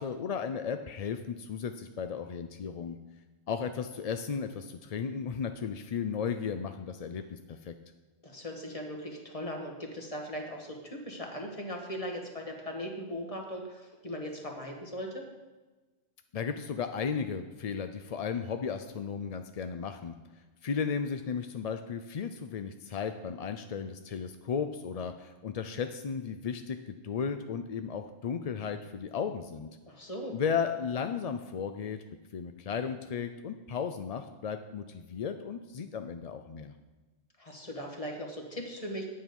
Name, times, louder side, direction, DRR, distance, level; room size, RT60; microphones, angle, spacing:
voice 1, 0.0-3.0 3.5-7.7 16.3-20.2 20.6-29.7 30.3-32.0 32.3-36.7, left 6 dB, 50° left, 8 dB, 0.4 m, -35 dB
voice 2, 8.2-15.2 29.9-30.3 37.4-39.1, equal, 30° left, 1 dB, 1.7 m, -39 dB
9.6 x 8.7 x 5.3 m, 1.2 s
omnidirectional pair, 1.1 m